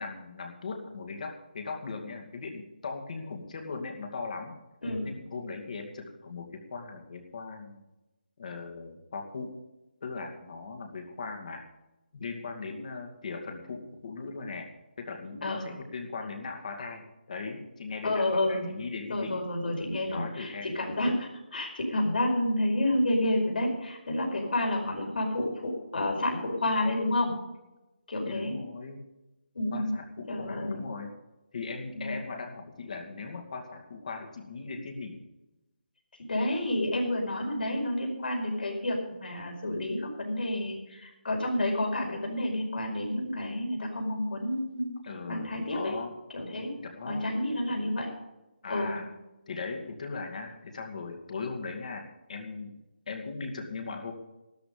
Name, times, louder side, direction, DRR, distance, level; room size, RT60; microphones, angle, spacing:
voice 1, 0.0-4.6 5.0-7.8 8.4-9.5 10.0-11.6 12.1-14.7 15.0-19.4 20.0-20.7 28.3-29.0 29.7-31.1 31.5-35.2 45.0-46.1 46.8-47.3 48.6-49.1 49.5-52.7 53.1-54.1, left 4 dB, 45° left, 4 dB, 2.5 m, -39 dB
voice 2, 18.0-18.6 19.1-27.3 28.1-28.6 29.5-29.9 30.3-30.8 32.0-32.1 36.3-44.9 45.3-45.9 46.3-46.7 47.1-48.1 48.7-49.0, left 1 dB, 65° left, 1 dB, 5.0 m, -29 dB
13.0 x 12.0 x 5.2 m, 1.0 s
figure-of-eight pair, 170°, 6 cm